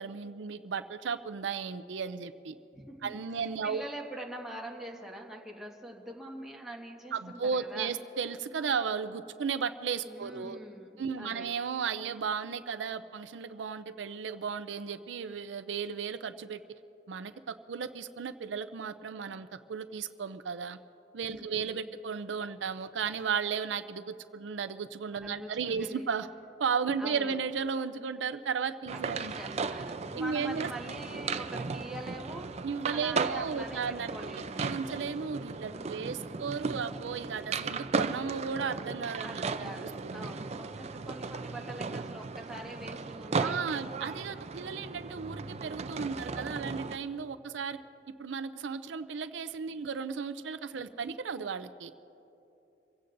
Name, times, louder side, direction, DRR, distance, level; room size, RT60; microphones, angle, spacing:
voice 1, 0.0-2.6 3.0-3.8 7.1-10.6 11.0-16.6 17.1-20.8 21.1-26.3 26.6-29.3 30.1-30.7 32.6-34.1 34.6-39.7 40.0-40.3 43.4-47.8 48.2-51.9, right 6 dB, 90° right, 11 dB, 0.5 m, -35 dB
voice 2, 2.7-7.9 10.1-11.5 21.3-21.9 25.2-26.0 27.0-27.4 28.9-32.6 32.9-34.7 35.6-36.4 39.2-43.5, right 1 dB, ahead, -2 dB, 1.5 m, -44 dB
sound 1, 28.9-47.0, right 4 dB, 35° right, 0.5 m, -36 dB
26.5 x 16.0 x 2.6 m, 2.9 s
head